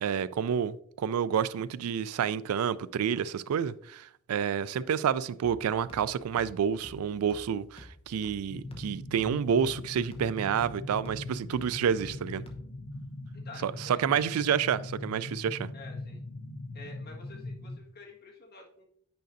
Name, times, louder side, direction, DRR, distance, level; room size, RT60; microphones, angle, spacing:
voice 1, 0.0-12.4 13.6-15.7, right 8 dB, 90° right, 0.3 m, -29 dB
sound 1, 5.4-12.9, left 1 dB, 25° left, 0.9 m, -52 dB
sound 2, 8.5-17.8, left 2 dB, 65° left, 0.7 m, -41 dB
voice 2, 13.3-14.3 15.7-16.2 16.7-18.9, left 3 dB, 45° left, 1.6 m, -50 dB
9.1 x 5.1 x 2.6 m
head